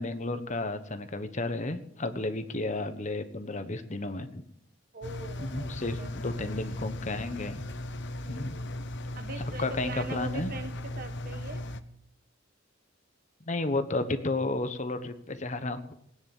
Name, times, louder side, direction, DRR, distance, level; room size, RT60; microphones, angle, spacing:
voice 1, 0.0-4.4 5.4-7.6 8.3-8.6 9.6-10.5 13.4-15.9, left 2 dB, 35° left, 9 dB, 1.1 m, -32 dB
voice 2, 4.9-5.7 6.0-6.5 8.2-8.7 9.1-11.6, right 2 dB, 45° right, 8 dB, 1.4 m, -42 dB
Engine, 5.0-11.8, left 1 dB, 60° left, 0.9 m, -37 dB
18.5 x 9.8 x 7.2 m, 0.75 s
head